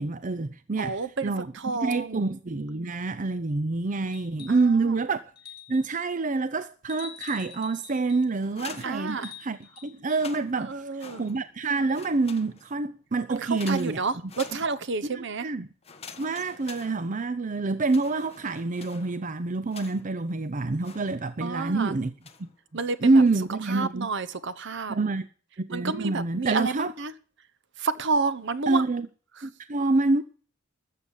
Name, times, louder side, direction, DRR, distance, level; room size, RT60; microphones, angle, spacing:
voice 1, 0.0-1.5 1.8-5.2 5.7-14.0 15.1-15.7 16.2-22.1 23.0-24.1 24.9-25.3 25.7-26.9 28.7-29.1 29.4-30.2, right 3 dB, 40° right, 0.6 m, -27 dB
voice 2, 0.8-2.3 4.5-4.9 8.8-9.3 10.6-11.2 13.3-15.5 21.4-21.9 22.7-23.2 23.7-24.9 25.7-27.1 27.8-28.8 29.4-29.5, right 4 dB, 60° right, 1.0 m, -30 dB
sound 1, 4.1-4.7 5.4-6.0 6.9-8.3 9.1-10.3 11.9-12.0, left 10 dB, 50° left, 4.0 m, -46 dB
sound 2, 8.4-9.6 10.0-11.6 11.9-12.9 13.5-15.1 15.8-17.5 17.8-20.2 20.8-21.6 22.2-22.6 23.0-23.5, left 5 dB, 30° left, 1.4 m, -47 dB
13.5 x 7.1 x 9.8 m
head